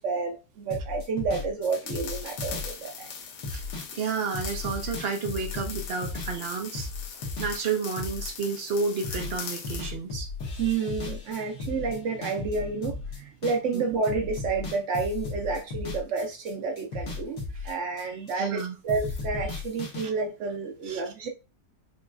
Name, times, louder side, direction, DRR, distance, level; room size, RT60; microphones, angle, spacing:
voice 1, 0.0-3.1 10.6-17.4 17.6-21.3, right 4 dB, 85° right, 0.6 m, -30 dB
sound 1, 0.7-9.4 9.6-13.8 14.0-16.5 16.8-18.6 18.9-20.1, left 3 dB, 60° left, 2.0 m, -35 dB
sound 2, 1.7-9.9, left 6 dB, 85° left, 1.7 m, -41 dB
voice 2, 3.9-6.9 7.4-10.3 13.7-13.8 17.5-17.7 18.3-18.8 20.0-20.1 20.8-21.0, right 5 dB, 50° right, 0.7 m, -31 dB
6.1 x 3.0 x 2.4 m
omnidirectional pair, 2.1 m